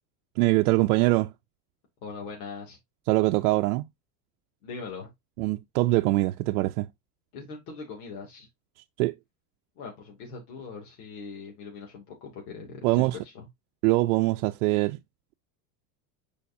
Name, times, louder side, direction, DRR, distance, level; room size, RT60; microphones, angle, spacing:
voice 1, 0.4-1.3 3.1-3.9 5.4-6.9 9.0-9.1 12.8-13.2 13.8-15.0, right 20 dB, 90° right, 0.6 m, -23 dB
voice 2, 2.0-2.8 4.6-5.1 7.3-8.5 9.8-13.5, left 4 dB, 85° left, 2.8 m, -41 dB
6.9 x 5.1 x 2.7 m
cardioid pair, 160°, 44 cm